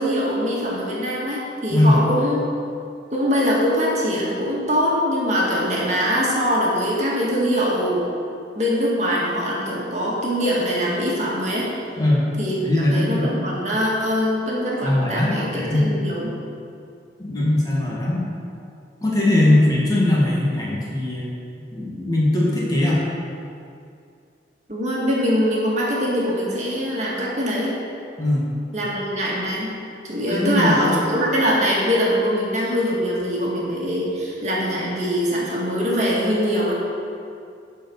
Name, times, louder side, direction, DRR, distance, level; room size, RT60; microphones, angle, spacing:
voice 1, 0.0-2.4 3.1-8.0 8.6-11.7 12.4-16.3 19.3-19.6 24.7-27.7 28.7-29.7 30.0-36.7, equal, 40° right, -5 dB, 1.8 m, -22 dB
voice 2, 12.6-13.3 14.8-16.1 17.2-18.2 19.0-21.3 21.7-23.0 28.2-28.5 30.3-31.0, left 1 dB, 20° left, -5 dB, 1.7 m, -20 dB
11.0 x 4.7 x 7.0 m, 2.4 s
head